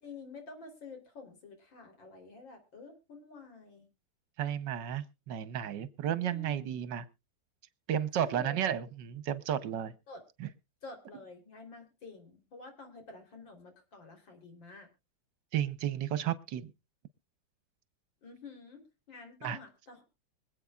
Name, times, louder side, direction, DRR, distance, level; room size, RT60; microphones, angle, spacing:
voice 1, 0.0-3.9 6.3-6.9 8.2-8.6 10.1-10.2 10.8-14.9 18.2-18.8 19.1-20.0, left 3 dB, 85° left, 4 dB, 4.2 m, -49 dB
voice 2, 4.4-7.0 7.9-9.9 10.4-10.5 15.5-16.7 19.4-19.6, right 10 dB, 75° right, 15 dB, 1.5 m, -33 dB
25.0 x 8.4 x 2.3 m, 0.27 s
omnidirectional pair, 2.0 m